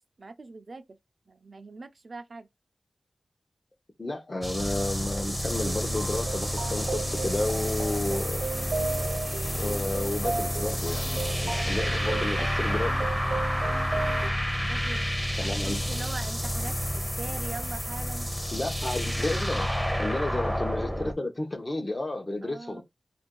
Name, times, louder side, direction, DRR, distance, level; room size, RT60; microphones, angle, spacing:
voice 1, 0.2-1.0 1.3-2.5 8.5-8.8 13.9-14.1 14.6-15.0 15.4-18.3 20.2-20.4 22.4-22.8, right 3 dB, 60° right, 0.4 m, -42 dB
voice 2, 4.0-8.4 9.5-13.1 15.4-15.8 18.5-19.7 20.0-22.8, left 2 dB, 45° left, 0.8 m, -32 dB
sound 1, 4.4-21.1, equal, 5° left, 0.7 m, -29 dB
sound 2, 5.5-14.3, right 4 dB, 80° right, 0.8 m, -35 dB
2.5 x 2.2 x 3.7 m
cardioid pair, 45°, 0 cm